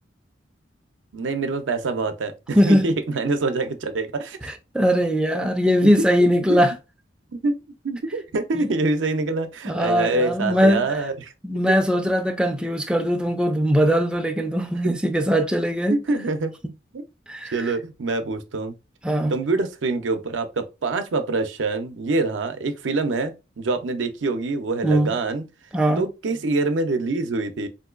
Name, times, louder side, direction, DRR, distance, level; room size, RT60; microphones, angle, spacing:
voice 1, 1.1-4.5 5.8-5.9 6.2-6.6 7.3-7.5 7.8-11.3 11.7-11.8 15.9-16.5 16.9-17.0 17.5-18.7 19.3-25.4 26.0-27.7, right 3 dB, 85° right, 0.5 m, -25 dB
voice 2, 2.5-2.9 4.7-6.7 8.5-8.7 9.7-10.8 11.4-16.0 17.3-17.7 19.0-19.3 24.8-25.1 25.7-26.1, equal, 5° right, 0.3 m, -20 dB
3.7 x 2.6 x 2.4 m
head